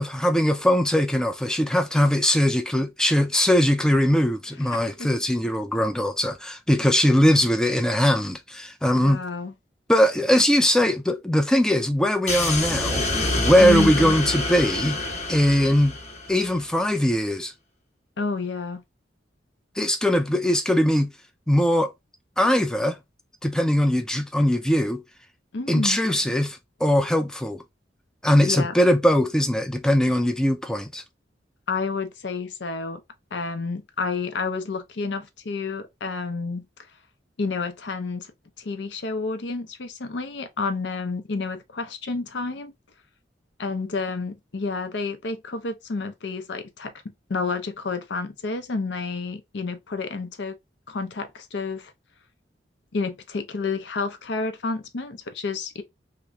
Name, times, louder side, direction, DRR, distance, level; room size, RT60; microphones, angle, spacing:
voice 1, 0.0-9.2 9.9-13.1 13.4-15.0 15.3-15.9 16.3-17.5 19.8-21.1 21.5-21.9 22.4-23.0 23.4-25.0 25.7-27.6 28.2-31.0, equal, 5° left, 0.3 m, -21 dB
voice 2, 4.7-5.1 8.9-9.5 13.6-14.1 18.2-18.8 25.5-26.0 28.4-28.7 31.7-33.0 33.3-36.6 37.4-38.3 38.6-42.7 43.6-50.6 50.9-51.9 52.9-55.8, left 4 dB, 70° left, 0.6 m, -30 dB
sound 1, 12.3-16.6, left 2 dB, 40° left, 0.8 m, -27 dB
2.9 x 2.5 x 3.3 m
head